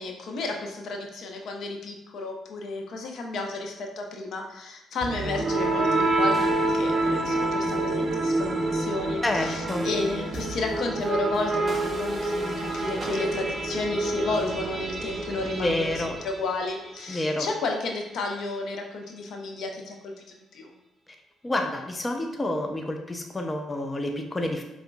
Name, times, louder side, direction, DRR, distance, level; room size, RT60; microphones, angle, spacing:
voice 1, 0.0-20.7, left 3 dB, 70° left, 2 dB, 0.7 m, -32 dB
sound 1, 5.0-16.9, right 2 dB, 30° right, 0.8 m, -27 dB
voice 2, 9.2-9.9 15.5-16.2 17.1-17.5 21.4-24.6, left 1 dB, 20° left, 4 dB, 0.5 m, -28 dB
5.2 x 3.5 x 2.3 m, 0.95 s
cardioid pair, 90°, 0 cm